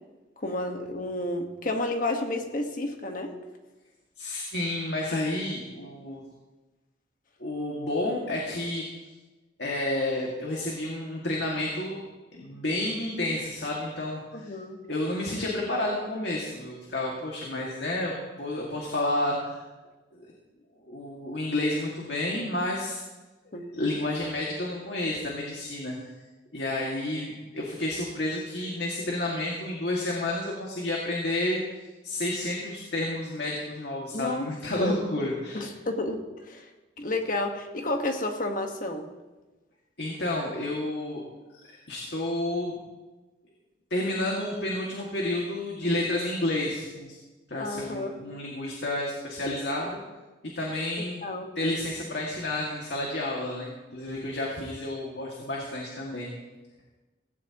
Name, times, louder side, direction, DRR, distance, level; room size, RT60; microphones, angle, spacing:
voice 1, 0.4-3.3 14.3-14.8 23.5-23.7 34.1-34.5 34.7-35.0 35.5-36.7 37.0-39.1 47.6-48.1 51.0-51.5, left 2 dB, 50° left, 4 dB, 1.5 m, -31 dB
voice 2, 4.2-6.2 7.4-8.9 9.6-12.0 12.3-14.5 14.9-19.6 20.1-20.3 20.8-23.0 23.7-26.0 26.5-31.6 32.0-35.7 40.0-41.2 41.9-42.8 43.9-47.1 47.5-50.0 50.5-51.2 51.6-56.3, left 1 dB, 70° left, -2 dB, 2.2 m, -30 dB
17.0 x 16.0 x 3.0 m, 1.2 s
head